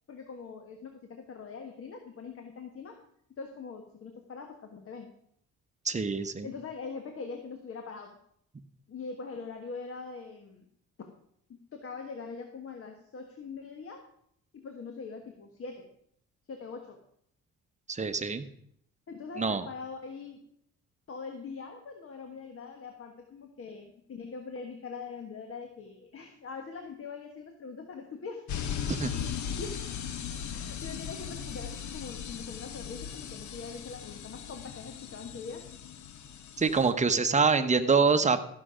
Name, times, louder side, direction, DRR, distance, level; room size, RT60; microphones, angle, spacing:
voice 1, 0.1-3.0 3.4-5.1 6.4-8.2 8.9-10.7 11.0-11.1 11.5-14.0 14.5-15.9 16.5-17.0 19.1-20.4 21.1-28.5 29.2-30.0 30.5-35.7, left 4 dB, 50° left, 4 dB, 1.4 m, -42 dB
voice 2, 5.8-6.5 17.9-18.5 19.4-19.6 28.9-29.2 36.6-38.4, right 5 dB, 25° right, 8 dB, 0.9 m, -25 dB
sound 1, 28.5-36.9, left 8 dB, 70° left, 1.0 m, -38 dB
14.0 x 6.4 x 5.0 m, 0.69 s
cardioid pair, 90°, 30 cm